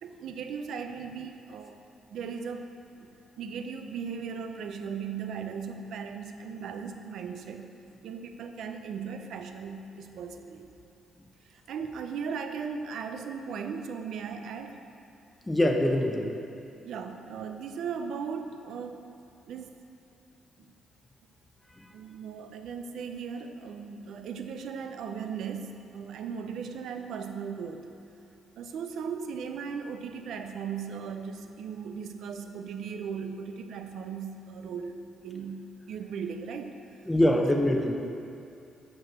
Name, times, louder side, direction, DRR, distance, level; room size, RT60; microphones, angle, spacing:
voice 1, 0.0-1.8 2.1-3.1 3.4-7.7 8.0-10.7 11.4-14.8 16.8-19.0 19.5-19.7 21.9-27.9 28.6-36.8 37.3-37.7, right 6 dB, 75° right, 7 dB, 0.5 m, -37 dB
voice 2, 15.5-16.3 21.8-21.9 37.1-38.0, left 1 dB, 10° left, 2 dB, 0.7 m, -24 dB
6.1 x 5.2 x 5.9 m, 2.6 s
cardioid pair, 90°, 0 cm